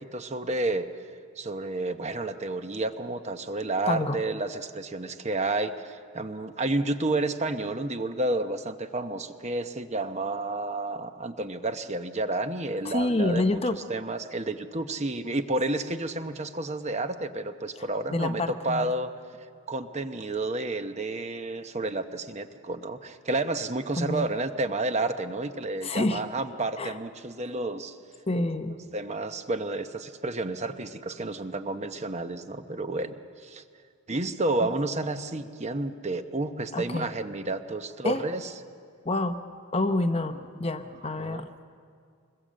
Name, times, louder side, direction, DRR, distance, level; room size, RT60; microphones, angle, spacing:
voice 1, 0.1-0.8 1.4-19.1 19.7-28.0 28.9-33.2 33.4-33.6 34.1-38.5 41.2-41.4, right 2 dB, 30° right, 8 dB, 0.9 m, -30 dB
voice 2, 3.9-4.2 12.8-13.8 17.8-18.9 24.0-24.3 25.8-26.2 26.8-26.9 28.3-28.8 34.6-34.7 36.7-37.1 38.0-38.2 39.0-39.4 39.7-41.6, left 2 dB, 25° left, 9 dB, 0.8 m, -28 dB
25.5 x 21.5 x 7.6 m, 2.3 s
head